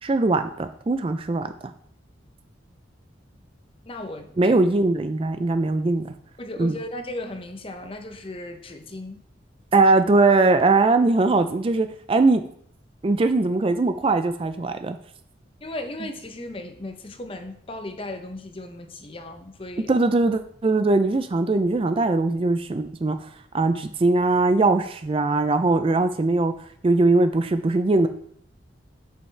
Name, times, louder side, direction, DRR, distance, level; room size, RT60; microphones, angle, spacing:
voice 1, 0.0-1.7 4.4-6.1 6.6-6.8 9.7-12.4 13.0-15.0 19.9-23.3 23.5-26.5 26.8-28.1, right 3 dB, 30° right, 9 dB, 0.4 m, -21 dB
voice 2, 3.8-4.6 6.4-9.2 15.6-19.9, left 1 dB, 30° left, 7 dB, 0.7 m, -36 dB
8.7 x 5.5 x 3.3 m, 0.65 s
head